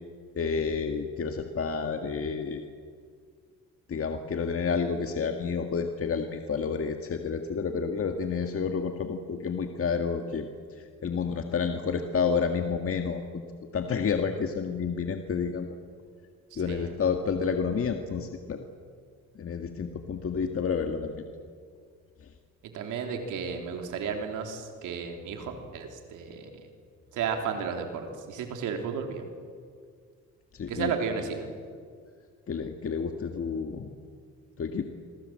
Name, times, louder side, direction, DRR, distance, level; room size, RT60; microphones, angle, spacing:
voice 1, 0.3-2.6 3.9-10.5 10.7-13.4 13.7-15.7 16.6-18.6 19.3-21.2 30.5-30.9 32.5-33.9 34.6-34.8, left 5 dB, 45° left, 5 dB, 1.9 m, -30 dB
voice 2, 16.5-16.9 22.7-26.5 27.1-29.2 30.7-31.5, right 6 dB, 90° right, 4 dB, 3.7 m, -33 dB
28.0 x 22.0 x 7.7 m, 2.1 s
cardioid pair, 90°, 30 cm